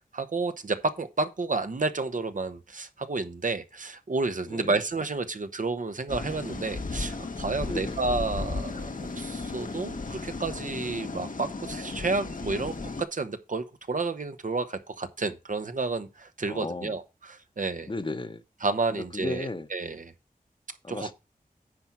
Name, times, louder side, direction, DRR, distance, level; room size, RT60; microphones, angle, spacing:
voice 1, 0.0-12.7 13.1-17.9 18.6-20.1 20.9-21.1, right 3 dB, 60° right, 1.0 m, -31 dB
sound 1, 6.1-13.0, left 3 dB, 65° left, 1.1 m, -35 dB
voice 2, 7.6-8.0 16.5-17.0 17.9-18.4 18.9-19.7 20.8-21.1, left 2 dB, 35° left, 1.0 m, -35 dB
9.7 x 4.4 x 6.1 m
wide cardioid pair, 65°, 15 cm